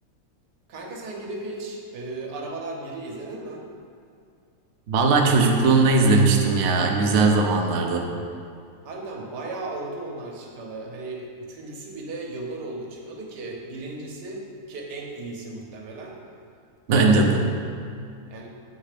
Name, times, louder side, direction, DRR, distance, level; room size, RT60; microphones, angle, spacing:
voice 1, 0.7-3.7 8.8-16.2 16.9-17.1 18.3-18.5, right 2 dB, 80° right, 0 dB, 1.5 m, -36 dB
voice 2, 4.9-8.1 16.9-17.4, right 3 dB, 60° right, 1 dB, 0.7 m, -19 dB
7.8 x 3.2 x 5.0 m, 2.4 s
omnidirectional pair, 1.8 m